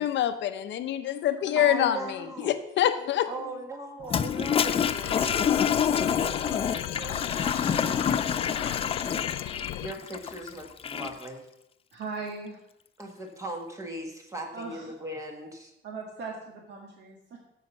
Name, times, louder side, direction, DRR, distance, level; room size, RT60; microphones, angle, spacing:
voice 1, 0.0-3.3, left 11 dB, 60° left, 10 dB, 0.9 m, -26 dB
voice 2, 1.5-2.5 3.3-8.0 9.8-11.4 13.0-15.7, right 2 dB, 15° right, 2 dB, 1.7 m, -39 dB
Toilet flush, 4.0-11.3, left 8 dB, 30° left, 0.4 m, -27 dB
sound 1, 4.6-9.9, left 15 dB, 85° left, 0.4 m, -36 dB
voice 3, 11.9-12.6 14.5-14.9 15.8-17.4, right 4 dB, 55° right, 0 dB, 1.7 m, -39 dB
14.5 x 5.8 x 5.5 m, 0.81 s
cardioid pair, 160°, 21 cm